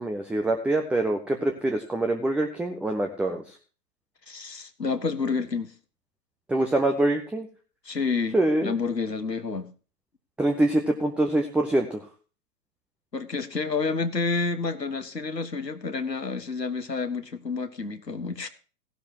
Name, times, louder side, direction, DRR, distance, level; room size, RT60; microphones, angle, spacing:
voice 1, 0.0-3.5 6.5-7.5 8.3-8.7 10.4-12.0, right 1 dB, 5° right, 0.6 m, -25 dB
voice 2, 4.3-5.7 7.8-9.7 13.1-18.5, left 4 dB, 85° left, 1.6 m, -29 dB
16.5 x 12.0 x 2.9 m
figure-of-eight pair, 105°, 48 cm